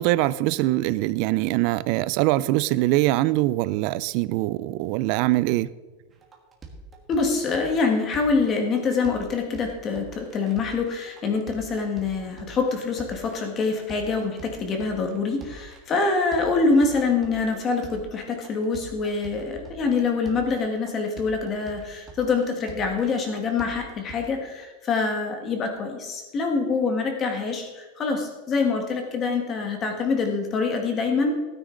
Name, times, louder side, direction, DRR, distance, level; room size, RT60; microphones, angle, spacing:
voice 1, 0.0-5.7, right 17 dB, 40° right, 0.4 m, -23 dB
sound 1, 6.1-24.4, right 3 dB, 15° right, 1.5 m, -45 dB
voice 2, 7.1-31.3, left 4 dB, 20° left, 1.6 m, -25 dB
16.0 x 9.6 x 3.9 m
supercardioid pair, 180°, 0 cm